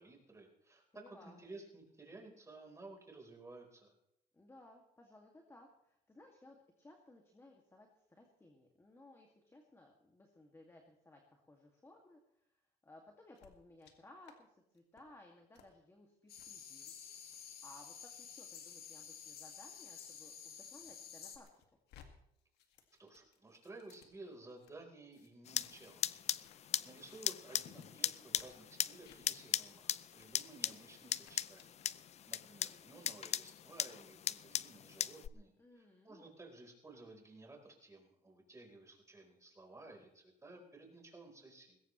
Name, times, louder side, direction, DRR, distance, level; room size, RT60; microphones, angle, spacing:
voice 1, 0.0-3.9 23.0-26.2 26.6-41.8, right 2 dB, 15° right, 1 dB, 4.1 m, -55 dB
voice 2, 0.9-1.4 4.3-12.5 12.8-16.9 17.6-21.5 35.6-36.4, left 2 dB, 15° left, 2 dB, 2.1 m, -60 dB
sound 1, 13.3-13.9 14.2-14.4 14.7-15.0 15.5-15.7 16.3-16.5 17.1-20.7 21.1-22.1 22.4-24.7 25.1-26.0 26.2-26.6 26.9-27.2 27.7-27.9 28.3-28.5 29.0-29.2 29.7-29.8 30.1-30.3 30.6-30.9 31.2-32.0, left 9 dB, 80° left, 2.0 m, -65 dB
sound 2, 16.3-21.4, left 7 dB, 65° left, 2.3 m, -51 dB
sound 3, 25.5-35.3, left 10 dB, 40° left, 0.4 m, -39 dB
20.5 x 17.0 x 3.2 m, 0.78 s
cardioid pair, 110°, 17 cm